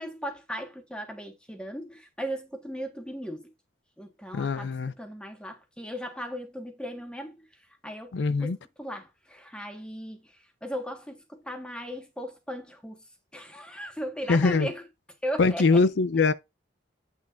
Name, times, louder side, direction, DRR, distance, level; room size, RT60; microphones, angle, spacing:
voice 1, 0.0-3.5 4.0-7.5 7.8-8.1 8.4-8.5 8.8-10.2 10.6-13.0 13.3-14.8 15.2-15.8, equal, 5° left, 1.5 m, -37 dB
voice 2, 4.3-4.9 8.1-8.6 14.3-14.7 15.4-16.3, left 4 dB, 70° left, 0.5 m, -22 dB
8.4 x 6.2 x 2.6 m
head